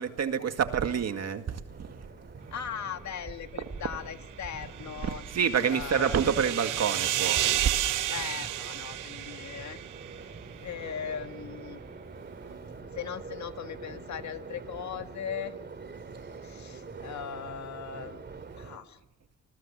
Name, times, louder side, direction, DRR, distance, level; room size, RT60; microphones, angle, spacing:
voice 1, 0.0-2.5 3.6-3.7 5.0-8.1 12.2-12.9 16.9-17.1 18.5-18.8, right 7 dB, 55° right, 2.1 m, -29 dB
sound 1, 1.7-18.8, right 4 dB, 35° right, 2.8 m, -45 dB
voice 2, 2.5-5.2 5.7-6.2 8.1-9.8 10.2-10.3 10.6-11.8 12.8-15.5 16.4-18.2 18.6-19.0, left 8 dB, 65° left, 1.8 m, -39 dB
sound 2, 4.6-10.2, right 13 dB, 90° right, 0.9 m, -32 dB
30.0 x 20.5 x 7.5 m
cardioid pair, 110°, 30 cm